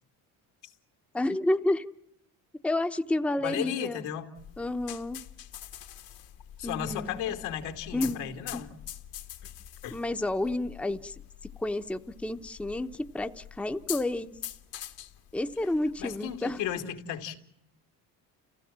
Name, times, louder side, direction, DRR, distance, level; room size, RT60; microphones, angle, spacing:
voice 1, 1.1-1.9 2.6-4.1 4.6-5.2 6.6-7.4 7.9-8.6 9.9-11.1 11.6-14.3 15.3-16.6, left 1 dB, 5° left, 0.8 m, -30 dB
voice 2, 3.4-4.3 6.6-8.7 9.4-9.5 9.8-10.0 16.0-17.4, left 10 dB, 85° left, 2.6 m, -34 dB
sound 1, 4.4-16.8, left 11 dB, 65° left, 1.6 m, -45 dB
30.0 x 16.0 x 7.4 m
supercardioid pair, 90°, 39 cm